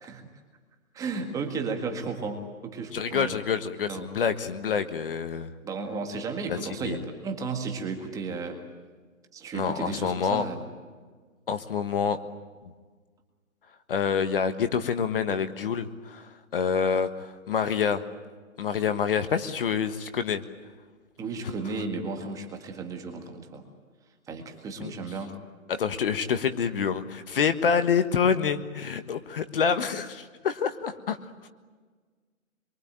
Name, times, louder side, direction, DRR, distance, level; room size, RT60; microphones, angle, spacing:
voice 1, 0.9-3.3 3.9-4.1 5.6-8.6 9.3-10.6 21.2-23.6 24.3-25.3, right 4 dB, 10° right, 4 dB, 1.8 m, -34 dB
voice 2, 2.9-5.5 6.5-7.0 9.5-10.5 11.5-12.2 13.9-18.0 18.6-20.4 24.8-24.9 25.7-31.2, left 6 dB, 40° left, 10 dB, 1.5 m, -27 dB
26.0 x 23.5 x 9.0 m, 1.5 s
hypercardioid pair, 155°, 41 cm